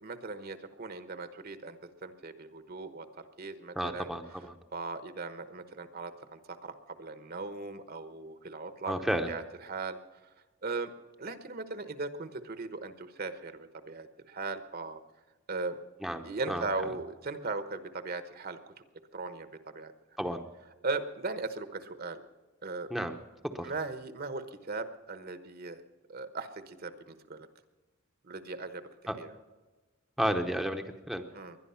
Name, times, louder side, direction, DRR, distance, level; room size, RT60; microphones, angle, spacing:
voice 1, 0.0-4.1 4.7-9.0 9.3-10.0 10.6-10.9 11.2-15.0 15.5-15.8 16.2-18.7 19.1-19.9 20.8-22.2 22.6-22.9 23.6-25.8 26.1-27.5 28.2-28.9 29.2-29.3 31.3-31.6, right 3 dB, 45° right, 10 dB, 1.1 m, -38 dB
voice 2, 3.8-4.6 8.8-9.3 16.0-16.7 20.2-20.4 22.9-23.2 23.4-23.7 29.1-29.2 30.2-31.3, equal, ahead, 4 dB, 0.8 m, -32 dB
21.0 x 11.0 x 5.7 m, 1.2 s
head